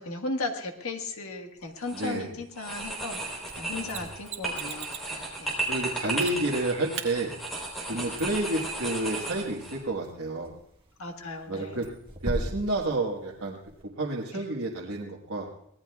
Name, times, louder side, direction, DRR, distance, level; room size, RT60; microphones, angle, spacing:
voice 1, 0.0-3.2 3.5-5.5 7.8-8.0 11.0-11.8 14.3-14.4, left 2 dB, 80° left, 3 dB, 1.6 m, -36 dB
sound 1, 1.8-2.2 2.6-9.8, right 2 dB, ahead, 3.7 m, -34 dB
voice 2, 1.9-2.3 3.6-4.1 5.7-7.3 7.9-10.5 11.5-11.9 12.2-13.6 14.0-15.5, right 2 dB, 75° right, -3 dB, 1.5 m, -30 dB
sound 2, 3.3-13.8, equal, 25° right, 1.6 m, -42 dB
Mechanisms, 3.9-5.1 6.2-6.6 6.9-7.1 9.9-10.0, right 9 dB, 60° right, 1.8 m, -39 dB
24.0 x 17.5 x 2.4 m, 0.77 s
head